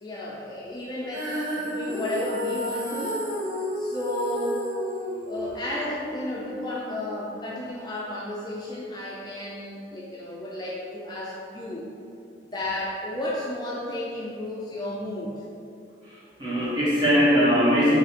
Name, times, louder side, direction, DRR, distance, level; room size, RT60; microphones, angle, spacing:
voice 1, 0.0-1.3 1.6-3.2 3.8-4.6 5.3-11.9 12.5-15.3, left 1 dB, 25° left, -5 dB, 0.4 m, -33 dB
Female singing, 1.1-7.3, equal, 50° right, 1.4 m, -32 dB
voice 2, 16.0-18.0, equal, 25° right, -8 dB, 1.2 m, -21 dB
3.8 x 3.3 x 4.2 m, 2.6 s
head